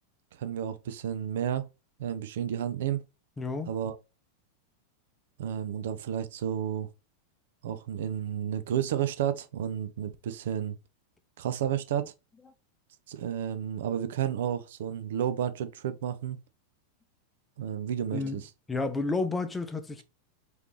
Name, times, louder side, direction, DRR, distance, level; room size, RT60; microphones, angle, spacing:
voice 1, 0.4-1.7 2.0-3.0 3.7-4.0 5.4-6.9 7.6-10.8 11.4-12.1 13.1-16.4 17.6-18.4, right 9 dB, 55° right, 0.4 m, -31 dB
voice 2, 3.4-3.7 18.1-18.4 18.7-20.0, left 3 dB, 10° left, 0.7 m, -31 dB
4.9 x 3.1 x 3.0 m
figure-of-eight pair, 90°, 0 cm